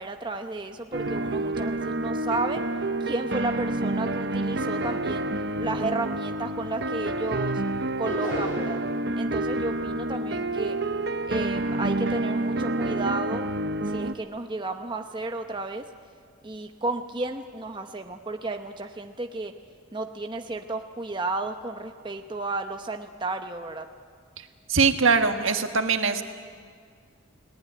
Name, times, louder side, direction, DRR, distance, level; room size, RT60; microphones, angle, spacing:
voice 1, 0.0-2.6 3.0-5.3 5.6-7.6 8.0-8.8 9.2-10.8 11.3-13.4 13.9-15.9 16.4-19.5 19.9-23.9, right 2 dB, 25° right, 5 dB, 0.8 m, -32 dB
sound 1, 0.9-14.1, right 2 dB, 55° right, 0.9 m, -28 dB
sound 2, 8.0-8.9, equal, 40° left, 7.6 m, -33 dB
voice 2, 24.7-26.2, right 5 dB, 70° right, 6 dB, 1.5 m, -22 dB
30.0 x 19.0 x 9.5 m, 2.1 s
head